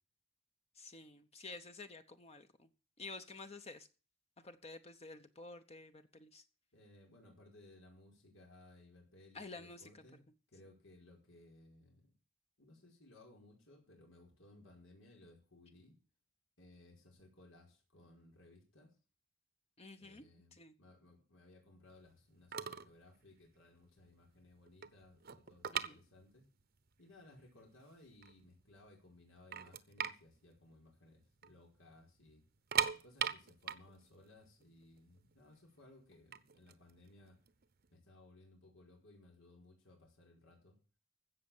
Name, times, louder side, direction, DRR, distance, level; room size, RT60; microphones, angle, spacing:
voice 1, 0.7-2.7 3.0-3.9 4.4-6.4 9.3-10.0 19.8-20.2 20.5-20.7 25.7-26.0, left 3 dB, 30° left, 0.9 m, -51 dB
voice 2, 6.7-10.2 10.5-12.1 12.6-16.0 16.6-19.0 20.0-26.5 27.0-32.4 32.9-37.4 37.9-40.8, left 2 dB, 85° left, 5.1 m, -61 dB
sound 1, 22.2-22.3 22.5-23.0 23.2-23.5 24.0-24.1 24.4-26.6 26.9-27.0 27.6-27.7 28.1-28.8 29.1-29.2 29.5-31.5 31.8-31.9 32.5-35.4 36.1-37.9, right 8 dB, 50° right, 0.9 m, -39 dB
16.0 x 6.4 x 7.2 m
head